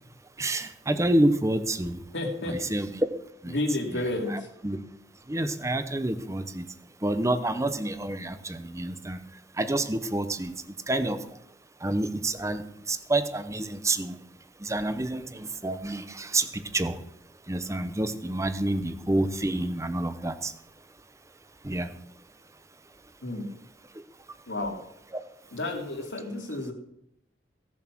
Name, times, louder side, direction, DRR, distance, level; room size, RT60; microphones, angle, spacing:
voice 1, 0.4-2.0 2.4-3.1 3.4-3.6 3.9-4.8 5.3-6.7 7.0-9.2 9.6-10.5 10.9-11.2 11.8-14.2 14.6-16.9 17.5-20.5 21.6-21.9, right 1 dB, 15° right, 11 dB, 0.9 m, -28 dB
voice 2, 2.1-2.6 3.5-4.3 23.2-23.5 24.5-24.8 25.5-26.7, left 2 dB, 80° left, 1 dB, 2.9 m, -30 dB
16.5 x 7.3 x 6.1 m, 0.75 s
head